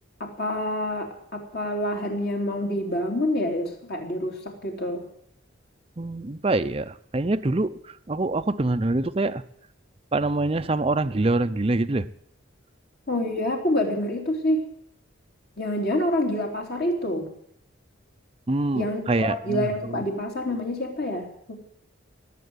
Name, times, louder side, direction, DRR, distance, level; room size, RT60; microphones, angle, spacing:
voice 1, 0.2-5.0 13.1-14.6 15.6-17.3 18.7-21.5, left 1 dB, 50° left, 2 dB, 3.3 m, -27 dB
voice 2, 6.0-9.4 10.1-12.1 18.5-20.0, right 2 dB, 30° right, 11 dB, 0.6 m, -25 dB
19.0 x 7.7 x 9.5 m, 0.71 s
head